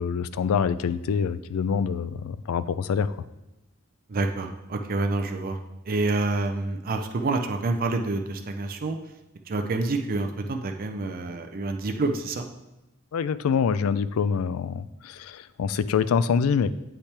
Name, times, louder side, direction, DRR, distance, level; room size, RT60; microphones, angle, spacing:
voice 1, 0.0-3.2 13.1-16.7, left 6 dB, 80° left, 15 dB, 0.3 m, -25 dB
voice 2, 4.1-5.6 5.9-9.0 9.5-12.5, right 2 dB, 45° right, 5 dB, 0.5 m, -27 dB
8.1 x 5.7 x 3.3 m, 0.95 s
head